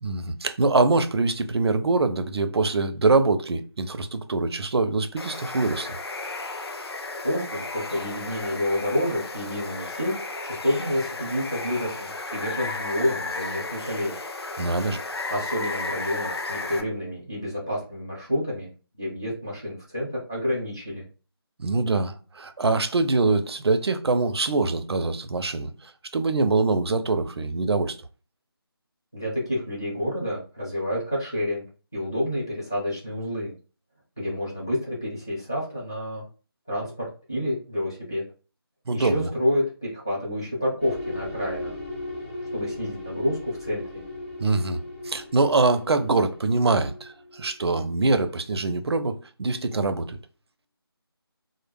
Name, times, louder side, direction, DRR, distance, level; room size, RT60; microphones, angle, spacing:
voice 1, 0.0-6.0 14.6-15.0 21.6-28.0 38.9-39.3 44.4-44.8 45.0-50.2, right 3 dB, 80° right, 0.4 m, -24 dB
Water, 5.2-16.8, left 3 dB, 75° left, 0.5 m, -34 dB
voice 2, 7.2-10.1 10.4-14.1 15.3-18.7 19.0-21.0 29.1-31.6 31.9-33.5 34.2-36.2 36.7-38.2 38.9-41.7 42.5-44.0, left 1 dB, 10° left, 0.3 m, -29 dB
sound 1, 40.8-47.9, left 2 dB, 25° left, 0.8 m, -37 dB
2.0 x 2.0 x 3.2 m
figure-of-eight pair, 170°, 13 cm